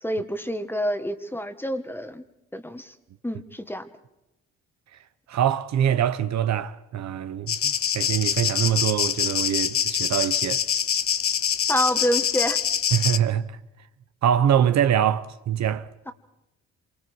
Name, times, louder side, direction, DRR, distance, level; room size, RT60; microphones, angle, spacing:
voice 1, 0.0-2.2 2.5-2.9 3.2-3.9 11.7-12.6 16.1-16.2, equal, 5° left, 1.7 m, -27 dB
voice 2, 5.3-10.6 12.9-13.6 14.2-15.9, right 9 dB, 65° right, 1.0 m, -24 dB
sound 1, 7.5-13.2, left 8 dB, 45° left, 0.9 m, -25 dB
27.0 x 24.5 x 4.7 m
cardioid pair, 90°, 30 cm